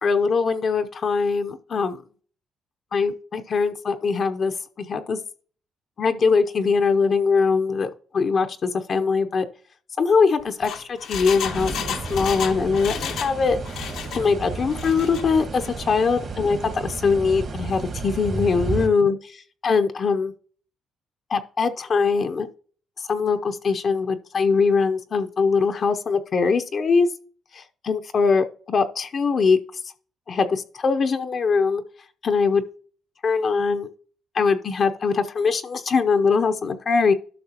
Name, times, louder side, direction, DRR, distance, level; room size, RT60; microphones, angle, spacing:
voice 1, 0.0-2.0 2.9-5.2 6.0-9.5 10.0-11.7 12.1-13.6 14.1-19.2 19.6-20.3 21.3-22.5 23.0-27.1 27.5-29.6 30.3-31.8 32.2-32.6 33.2-33.9 34.3-37.1, left 5 dB, 50° left, 7 dB, 0.6 m, -22 dB
Engine, 10.4-13.4 13.6-14.2 14.7-15.2 15.6-15.7, left 7 dB, 80° left, 0.8 m, -32 dB
sound 1, 11.4-18.9, right 3 dB, 55° right, 1.6 m, -32 dB
12.0 x 5.9 x 2.9 m, 0.43 s
cardioid pair, 90°, 0 cm